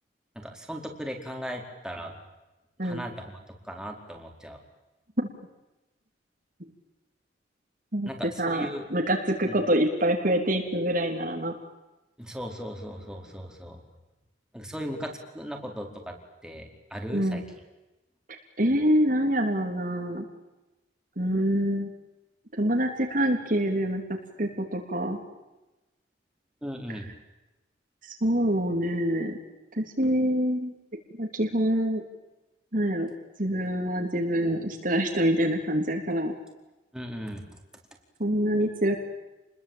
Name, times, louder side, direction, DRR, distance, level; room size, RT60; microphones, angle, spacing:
voice 1, 0.3-2.2 2.8-4.6 8.1-8.9 9.5-9.6 12.2-13.8 14.5-16.1 16.4-17.4 26.6-27.1 36.9-37.5, equal, 5° right, 2 dB, 4.7 m, -37 dB
voice 2, 8.4-11.5 17.1-17.4 18.6-20.3 21.2-21.9 22.6-25.2 28.0-29.4 29.7-30.7 31.2-32.0 32.7-33.1 33.4-36.3 38.2-38.9, equal, 50° right, 2 dB, 3.5 m, -26 dB
30.0 x 21.5 x 9.0 m, 1.0 s
head